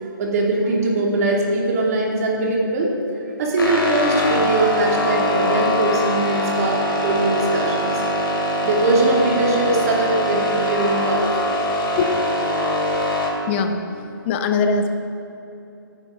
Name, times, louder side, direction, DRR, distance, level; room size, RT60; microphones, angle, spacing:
voice 1, 0.0-2.9 3.4-8.0 8.6-11.6, right 2 dB, 45° right, -1 dB, 2.7 m, -21 dB
sound 1, 3.6-13.3, equal, 80° left, 2.8 m, -22 dB
voice 2, 13.5-14.9, left 4 dB, 30° left, 7 dB, 0.9 m, -22 dB
15.5 x 10.0 x 3.8 m, 2.7 s
figure-of-eight pair, 140°, 12 cm